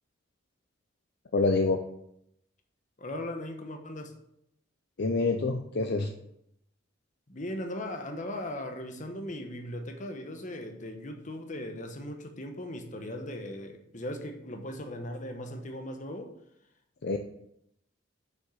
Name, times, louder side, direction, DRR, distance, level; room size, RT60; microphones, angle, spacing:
voice 1, 1.3-1.8 5.0-6.1 17.0-17.2, left 3 dB, 60° left, 5 dB, 0.6 m, -26 dB
voice 2, 3.0-4.1 7.3-16.3, left 1 dB, 40° left, 5 dB, 1.1 m, -38 dB
6.4 x 6.0 x 5.6 m, 0.77 s
head